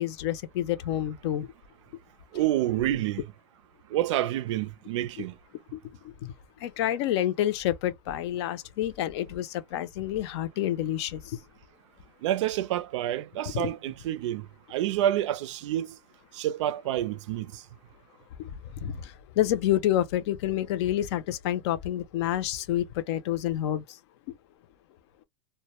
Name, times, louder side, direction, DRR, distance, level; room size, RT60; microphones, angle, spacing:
voice 1, 0.0-1.5 5.7-5.8 6.2-6.3 6.6-11.4 13.5-13.7 18.4-18.5 18.8-23.8, left 12 dB, 60° left, 0.5 m, -28 dB
voice 2, 2.3-3.3 3.9-5.3 12.2-16.0 16.3-17.6, right 13 dB, 75° right, 0.5 m, -28 dB
2.1 x 2.0 x 2.9 m
supercardioid pair, 150°, 15 cm